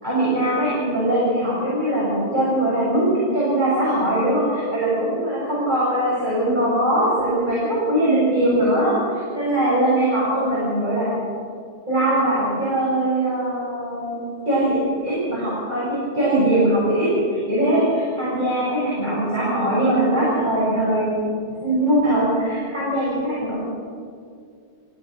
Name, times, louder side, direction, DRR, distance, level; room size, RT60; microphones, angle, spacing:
voice 1, 0.0-11.1 11.9-14.2 14.5-21.1 21.6-23.6, right 1 dB, 45° right, -8 dB, 7.5 m, -21 dB
29.0 x 16.0 x 6.7 m, 2.3 s
omnidirectional pair, 1.1 m